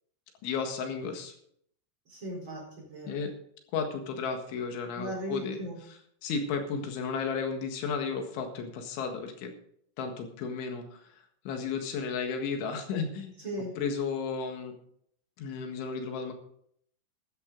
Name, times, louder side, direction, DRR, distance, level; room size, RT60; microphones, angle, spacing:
voice 1, 0.4-1.3 3.1-3.3 3.7-5.6 6.2-9.5 10.0-11.1 11.5-13.4 13.8-14.7 15.4-16.3, left 5 dB, 80° left, 4 dB, 4.1 m, -33 dB
voice 2, 2.1-3.2 4.9-5.8 13.4-13.7, right 1 dB, 25° right, -2 dB, 4.7 m, -37 dB
13.5 x 12.0 x 3.9 m, 0.66 s
omnidirectional pair, 5.4 m